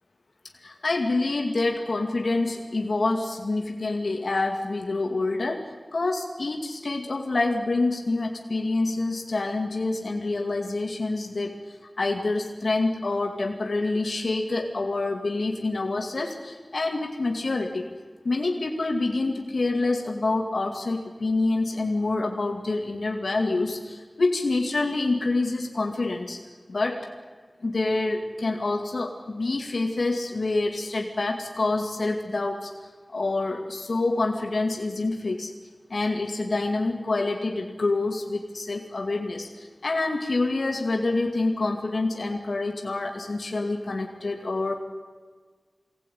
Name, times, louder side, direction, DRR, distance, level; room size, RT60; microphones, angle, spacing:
voice 1, 0.6-17.9 18.2-26.4 26.7-27.1 27.6-32.7 33.1-35.5 35.9-44.8, left 2 dB, 85° left, 2 dB, 2.2 m, -27 dB
24.0 x 18.5 x 9.2 m, 1.5 s
wide cardioid pair, 65°, 0 cm